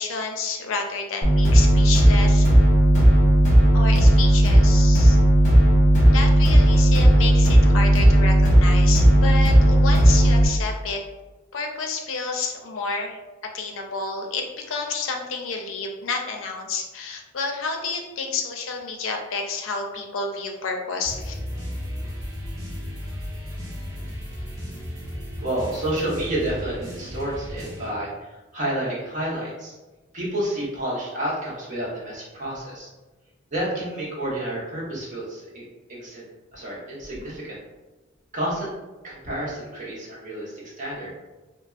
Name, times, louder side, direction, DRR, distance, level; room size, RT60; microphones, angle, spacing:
voice 1, 0.0-2.5 3.7-5.2 6.1-11.0 11.5-13.2 13.5-21.3, left 4 dB, 75° left, 2 dB, 0.5 m, -30 dB
sound 1, 1.2-10.5, right 1 dB, 40° left, 0.9 m, -15 dB
sound 2, 21.0-27.9, equal, 20° right, 1.1 m, -34 dB
voice 2, 25.4-29.8 30.1-32.9 33.5-36.2 36.5-37.6 38.3-38.7 39.0-41.1, right 1 dB, 40° right, -6 dB, 1.0 m, -30 dB
3.4 x 2.0 x 2.4 m, 1.2 s
head